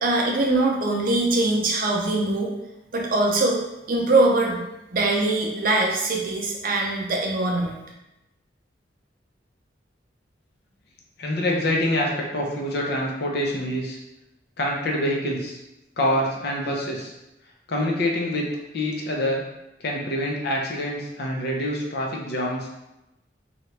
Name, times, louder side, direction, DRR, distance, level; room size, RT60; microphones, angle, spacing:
voice 1, 0.0-2.5 2.9-3.6 3.9-4.6 4.9-7.8, right 2 dB, 50° right, 0 dB, 0.5 m, -22 dB
voice 2, 11.2-14.0 14.6-15.6 16.0-17.1 17.7-18.5 18.7-19.4 19.8-22.7, left 1 dB, 60° left, -1 dB, 0.6 m, -26 dB
2.8 x 2.4 x 3.2 m, 0.93 s
head